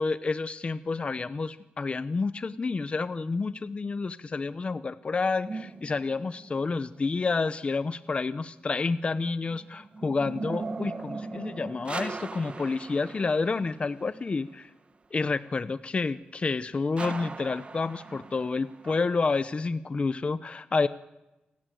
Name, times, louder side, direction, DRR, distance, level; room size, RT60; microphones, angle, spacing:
voice 1, 0.0-14.7 15.1-20.9, left 4 dB, 35° left, 14 dB, 0.8 m, -29 dB
sound 1, 5.5-6.7 9.3-14.1 17.0-19.3, right 3 dB, 35° right, 1.4 m, -39 dB
28.5 x 18.0 x 9.2 m, 0.98 s
wide cardioid pair, 150°, 3 cm